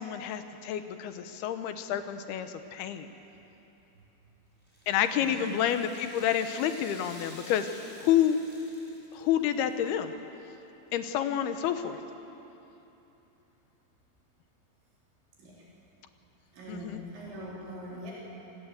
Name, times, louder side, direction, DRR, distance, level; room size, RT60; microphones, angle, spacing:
voice 1, 0.0-3.1 4.9-7.7 8.0-8.4 9.1-10.1 10.9-12.0 16.7-17.0, left 10 dB, 75° left, 9 dB, 2.6 m, -29 dB
Rattle (instrument), 4.6-9.9 10.2-10.3 11.1-11.2, equal, ahead, 5.0 m, -51 dB
voice 2, 5.2-5.6 15.4-15.6 16.5-18.1, equal, 80° right, -5 dB, 6.1 m, -43 dB
27.0 x 18.5 x 8.1 m, 3.0 s
omnidirectional pair, 5.3 m